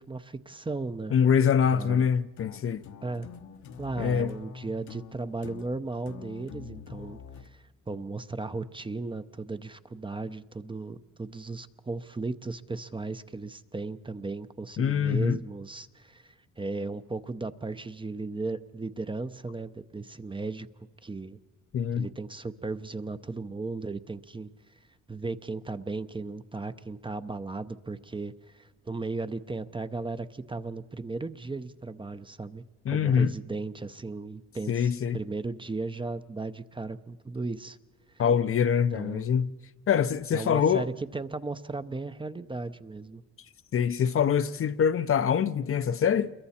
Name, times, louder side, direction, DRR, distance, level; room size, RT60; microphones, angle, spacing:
voice 1, 0.0-1.1 1.7-2.1 3.0-3.3 3.8-20.7 21.0-21.4 21.9-24.5 25.1-37.8 38.9-39.3 40.3-43.2, right 3 dB, 15° right, 0.7 m, -36 dB
voice 2, 1.1-2.8 4.0-4.3 14.8-15.4 21.7-22.1 32.9-33.3 34.7-35.2 38.2-39.5 39.9-40.9 43.7-46.3, left 7 dB, 45° left, 0.7 m, -24 dB
sound 1, 1.6-7.5, left 6 dB, 70° left, 1.1 m, -45 dB
28.5 x 22.5 x 4.3 m
cardioid pair, 90°, 30 cm